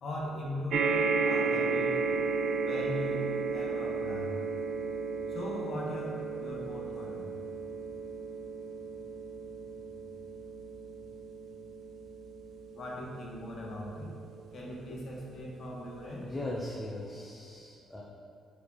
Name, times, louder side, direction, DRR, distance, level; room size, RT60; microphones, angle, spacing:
voice 1, 0.0-1.9 2.6-4.3 5.3-7.4 12.7-14.1 14.5-16.3, left 1 dB, 60° left, -3 dB, 1.3 m, -39 dB
sound 1, 0.7-15.3 16.0-16.1 16.4-16.5, right 4 dB, 70° right, 0.4 m, -34 dB
voice 2, 16.2-18.0, left 1 dB, 15° left, -2 dB, 0.7 m, -39 dB
4.9 x 4.7 x 4.1 m, 2.5 s
cardioid pair, 90°, 0 cm